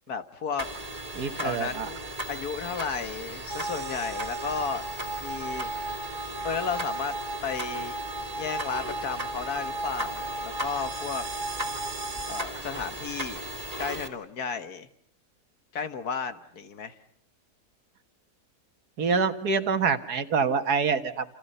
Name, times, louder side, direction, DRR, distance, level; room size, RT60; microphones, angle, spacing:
voice 1, 0.1-0.7 1.4-2.0 2.3-4.8 5.2-5.7 6.4-7.2 7.4-7.9 8.4-11.2 12.3-13.4 13.8-14.9 15.7-17.0, left 6 dB, 70° left, 10 dB, 2.0 m, -33 dB
sound 1, 0.6-14.1, right 1 dB, 20° right, 2.6 m, -37 dB
voice 2, 1.1-1.9 19.0-21.2, right 5 dB, 75° right, 9 dB, 2.1 m, -26 dB
sound 2, 3.5-12.4, right 2 dB, 45° right, 2.1 m, -35 dB
29.0 x 28.5 x 5.6 m, 0.65 s
omnidirectional pair, 1.7 m